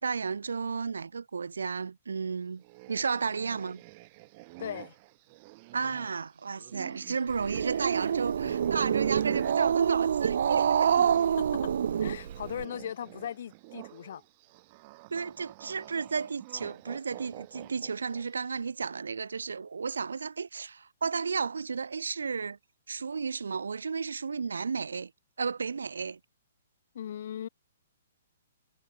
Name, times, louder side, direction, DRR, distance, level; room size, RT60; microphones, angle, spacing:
voice 1, 0.0-2.6 2.9-3.8 5.7-10.9 15.1-22.6 22.9-25.1 25.4-26.2, right 5 dB, 90° right, 1.3 m, -33 dB
sound 1, 2.6-11.3 11.6-18.4, right 25 dB, 40° right, 2.9 m, -47 dB
voice 2, 4.6-5.0 8.4-8.5 11.4-11.7 12.0-14.2 26.9-27.5, left 9 dB, 60° left, 1.8 m, -38 dB
Growling, 7.3-12.6, right 8 dB, 70° right, 0.4 m, -27 dB
hypercardioid pair, 145°, 0 cm